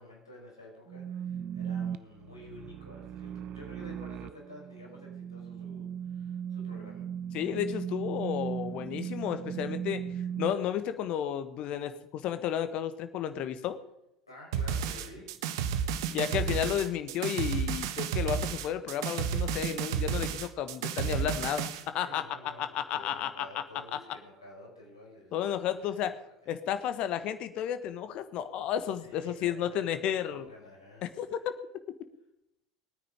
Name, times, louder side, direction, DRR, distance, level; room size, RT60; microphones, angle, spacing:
voice 1, 0.0-7.1 14.3-15.4 22.0-25.5 25.8-26.3 29.0-31.4, left 1 dB, 85° left, -2 dB, 5.3 m, -50 dB
sound 1, 0.9-10.5, right 8 dB, 45° right, 0.7 m, -37 dB
voice 2, 7.3-10.0 10.4-13.8 16.1-22.2 22.6-23.5 25.3-26.2 26.5-30.4 31.0-31.4, left 10 dB, 45° left, 11 dB, 1.4 m, -32 dB
sound 2, 14.5-21.8, right 7 dB, 60° right, 1.2 m, -32 dB
20.5 x 9.6 x 5.1 m, 0.84 s
figure-of-eight pair, 75°, 2 cm